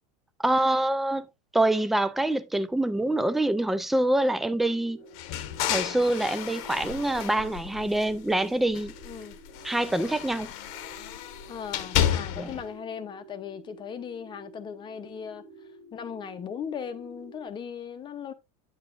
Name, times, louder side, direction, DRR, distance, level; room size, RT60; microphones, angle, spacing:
voice 1, 0.4-1.3 1.5-5.0 5.7-8.9 9.6-10.5 12.4-12.5, right 1 dB, ahead, 0.4 m, -25 dB
sound 1, 4.5-17.5, right 3 dB, 20° right, 1.9 m, -50 dB
sound 2, 5.1-8.3 8.7-12.6, left 11 dB, 55° left, 1.0 m, -32 dB
voice 2, 9.0-9.4 11.5-15.4 15.9-18.3, left 7 dB, 25° left, 0.8 m, -38 dB
9.1 x 6.9 x 2.5 m
supercardioid pair, 145°, 19 cm